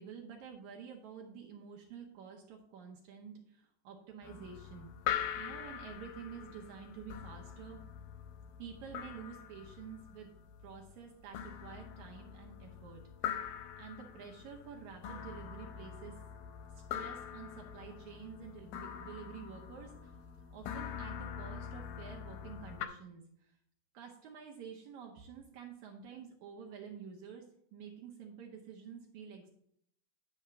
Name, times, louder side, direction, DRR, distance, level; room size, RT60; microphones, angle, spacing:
voice 1, 0.0-4.9 5.4-7.8 8.6-10.3 10.6-13.5 13.8-16.2 16.7-20.2 20.5-23.6 23.9-27.5 27.7-29.5, right 7 dB, 75° right, 1 dB, 1.7 m, -49 dB
sound 1, 4.2-22.9, left 9 dB, 80° left, 2.3 m, -43 dB
10.5 x 3.5 x 6.8 m, 0.71 s
omnidirectional pair, 4.5 m